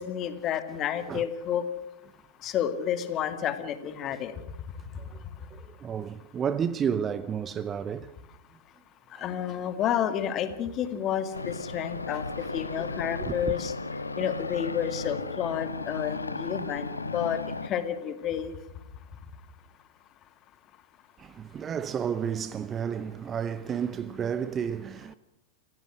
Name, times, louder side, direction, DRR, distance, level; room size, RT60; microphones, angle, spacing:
voice 1, 0.0-1.6 2.4-4.3 9.2-12.2 12.5-13.7 14.2-16.9 17.1-18.5, left 9 dB, 35° left, 2.3 m, -30 dB
voice 2, 5.5-8.1 9.2-9.3 13.2-13.4 21.2-25.1, right 7 dB, 25° right, 0.8 m, -31 dB
sound 1, 11.3-17.7, left 3 dB, 80° left, 1.3 m, -35 dB
29.0 x 16.0 x 6.5 m
figure-of-eight pair, 90°, 0 cm